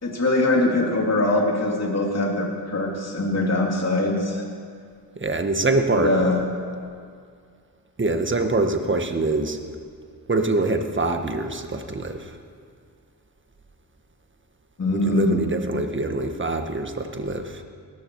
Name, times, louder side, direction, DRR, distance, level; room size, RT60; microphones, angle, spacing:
voice 1, 0.0-4.4 5.9-6.4 14.8-15.4, left 2 dB, 35° left, -1 dB, 2.9 m, -22 dB
voice 2, 5.2-6.2 8.0-9.6 10.3-12.4 14.9-17.6, right 2 dB, 25° right, 6 dB, 1.6 m, -24 dB
18.0 x 14.5 x 4.8 m, 2.2 s
cardioid pair, 65°, 43 cm